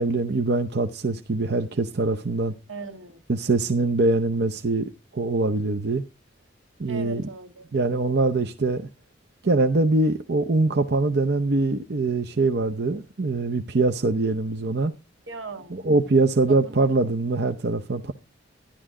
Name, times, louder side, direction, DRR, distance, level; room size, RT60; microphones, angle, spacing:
voice 1, 0.0-2.5 3.3-6.0 6.8-7.3 7.7-8.9 9.4-14.9 15.7-18.1, right 3 dB, 55° right, 0.7 m, -23 dB
voice 2, 2.7-3.2 6.9-7.6 15.3-15.7 16.5-16.9, right 4 dB, 80° right, 1.9 m, -38 dB
12.0 x 11.0 x 3.7 m
head